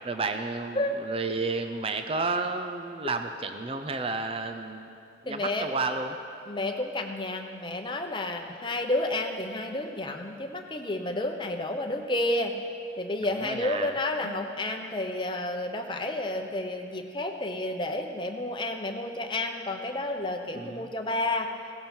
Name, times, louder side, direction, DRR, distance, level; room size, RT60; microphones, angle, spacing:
voice 1, 0.0-4.9 5.2-6.2 13.2-13.9 14.2-14.3 20.5-20.9, right 3 dB, 30° right, 7 dB, 0.6 m, -31 dB
voice 2, 5.3-5.7 6.5-12.5 13.0-21.5, left 2 dB, 25° left, 3 dB, 1.0 m, -31 dB
16.5 x 14.0 x 4.5 m, 2.5 s
head